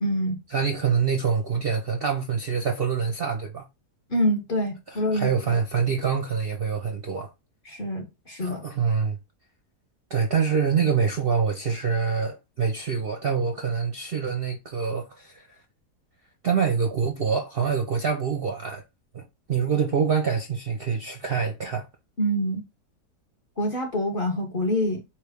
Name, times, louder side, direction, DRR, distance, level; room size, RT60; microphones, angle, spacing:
voice 1, 0.0-0.4 4.1-5.6 7.6-8.6 22.2-22.6 23.6-25.0, equal, 40° left, 1.0 m, -26 dB
voice 2, 0.5-3.7 4.9-7.3 8.4-9.2 10.1-15.5 16.4-18.8 19.1-21.9, right 6 dB, 55° right, 0.6 m, -25 dB
4.7 x 3.2 x 3.4 m
omnidirectional pair, 1.7 m